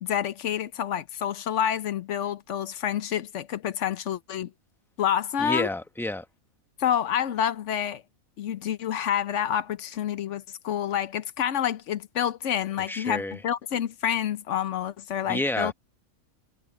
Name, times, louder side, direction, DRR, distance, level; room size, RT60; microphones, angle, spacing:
voice 1, 0.0-4.5 5.0-5.7 6.8-8.0 8.4-15.7, left 9 dB, 60° left, 1.0 m, -28 dB
voice 2, 5.4-6.3 12.9-13.4 15.3-15.7, left 1 dB, ahead, 0.9 m, -29 dB
omnidirectional pair, 1.5 m